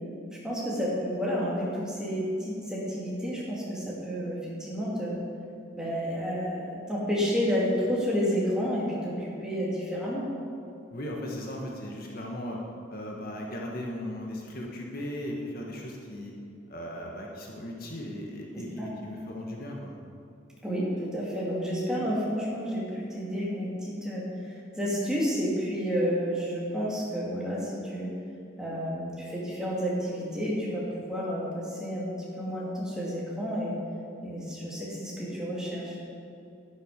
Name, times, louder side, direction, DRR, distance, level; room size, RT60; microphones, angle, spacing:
voice 1, 0.4-5.2 5.7-10.2 18.5-18.9 20.6-28.1 28.6-32.1 32.4-33.7 34.2-36.0, equal, 5° right, -6 dB, 2.8 m, -30 dB
voice 2, 10.9-12.6 12.9-16.3 16.7-20.0, left 1 dB, 50° left, -1 dB, 1.4 m, -37 dB
11.5 x 10.5 x 5.2 m, 2.5 s
head